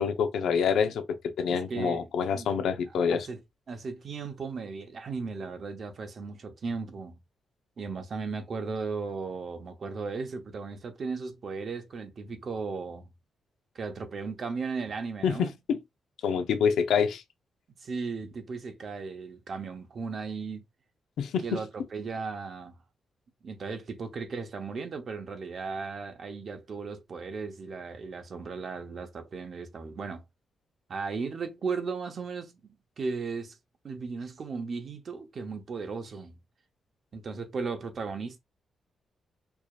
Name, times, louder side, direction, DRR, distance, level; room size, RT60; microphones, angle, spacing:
voice 1, 0.0-3.3 15.2-15.8 16.2-17.2 21.2-21.6, left 6 dB, 80° left, 0.6 m, -27 dB
voice 2, 1.5-2.1 2.3-2.5 3.1-3.4 3.7-7.2 7.8-13.1 13.7-15.6 17.8-20.6 21.4-22.8 23.4-30.2 30.9-33.6 33.8-36.4 37.1-38.4, right 4 dB, 45° right, 0.8 m, -36 dB
4.7 x 2.7 x 2.4 m
wide cardioid pair, 150°, 0 cm